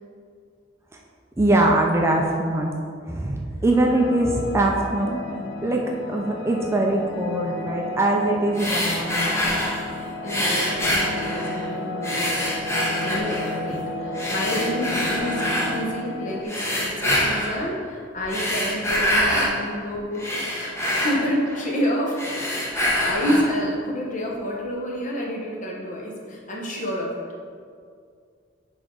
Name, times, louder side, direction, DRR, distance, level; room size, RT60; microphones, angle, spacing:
voice 1, 1.4-2.7 3.0-5.2 5.6-5.8 6.1-9.6 13.7-13.8, right 1 dB, 15° right, -1 dB, 0.4 m, -22 dB
sound 1, 3.7-16.4, left 2 dB, 65° left, 0.4 m, -33 dB
sound 2, 8.5-9.9 10.3-11.7 12.0-13.6 14.1-15.7 16.4-17.6 18.2-19.6 20.0-21.8 22.1-23.6, left 1 dB, 15° left, 1.0 m, -25 dB
voice 2, 10.2-12.5 13.0-22.2 22.8-27.3, equal, 40° left, -2 dB, 1.1 m, -29 dB
10.0 x 3.6 x 3.8 m, 2.2 s
head